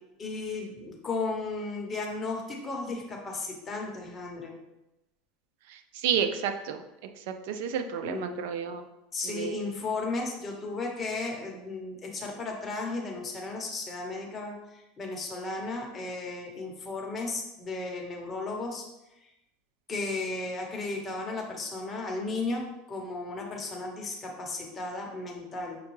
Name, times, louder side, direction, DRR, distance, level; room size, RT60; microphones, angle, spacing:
voice 1, 0.2-4.5 8.0-8.5 9.1-18.8 19.2-19.3 19.9-25.8, left 3 dB, 20° left, 0 dB, 0.9 m, -35 dB
voice 2, 5.7-6.8 7.3-8.8 9.2-9.6, right 8 dB, 70° right, 7 dB, 0.4 m, -31 dB
6.1 x 2.2 x 3.1 m, 0.94 s
supercardioid pair, 130°, 0 cm